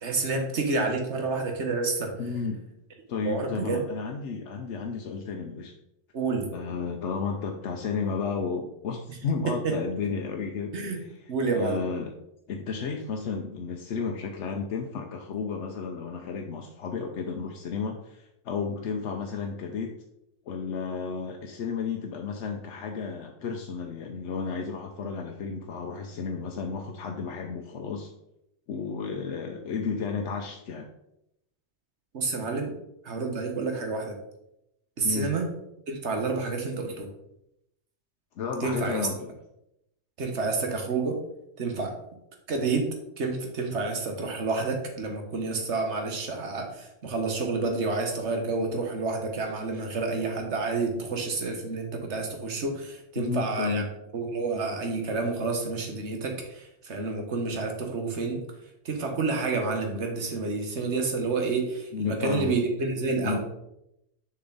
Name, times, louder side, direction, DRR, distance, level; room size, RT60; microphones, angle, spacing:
voice 1, 0.0-2.1 3.2-3.8 6.1-6.5 9.6-9.7 10.7-11.0 11.3-11.8 32.1-32.7 33.0-34.1 35.0-35.5 35.9-37.1 38.6-39.1 40.2-41.2 41.6-41.9 42.5-42.9 43.2-53.8 54.1-58.4 58.8-63.4, right 3 dB, 80° right, 3 dB, 1.5 m, -29 dB
voice 2, 2.2-2.6 3.1-5.7 6.5-12.1 12.5-20.0 20.5-28.1 28.7-30.9 35.0-35.3 38.4-39.3 53.2-53.9 61.9-62.5 63.2-63.4, left 5 dB, 85° left, 2 dB, 1.0 m, -33 dB
6.8 x 5.4 x 3.9 m, 0.83 s
omnidirectional pair, 1.2 m